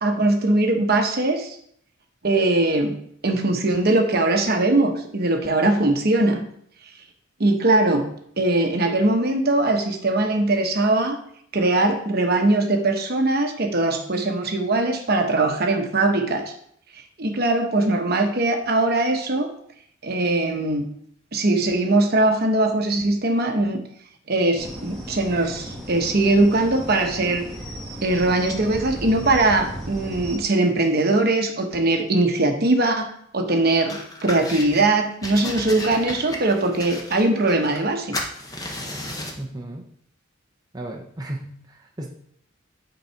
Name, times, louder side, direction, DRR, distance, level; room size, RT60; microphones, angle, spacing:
voice 1, 0.0-1.6 2.2-3.0 3.2-6.4 7.4-11.2 11.5-16.5 17.2-19.5 20.0-20.9 21.3-23.8 24.3-27.4 28.0-38.2, right 2 dB, 50° right, 4 dB, 1.0 m, -21 dB
sound 1, 24.6-30.4, equal, 5° left, 1.5 m, -35 dB
sound 2, 33.9-34.8 35.2-37.9 38.1-39.4, left 1 dB, 20° left, 0.9 m, -33 dB
voice 2, 39.4-39.9 40.7-42.1, right 1 dB, 20° right, -1 dB, 0.7 m, -34 dB
8.2 x 4.0 x 4.5 m, 0.67 s
head